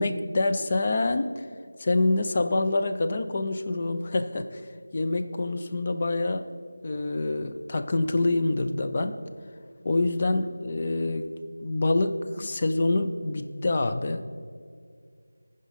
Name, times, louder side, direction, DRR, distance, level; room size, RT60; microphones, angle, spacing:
voice 1, 0.0-1.4 1.8-4.6 4.9-6.5 6.8-9.2 9.8-11.3 11.6-14.2, left 2 dB, 25° left, 7 dB, 0.4 m, -26 dB
15.0 x 5.1 x 4.1 m, 2.1 s
figure-of-eight pair, 175°, 0 cm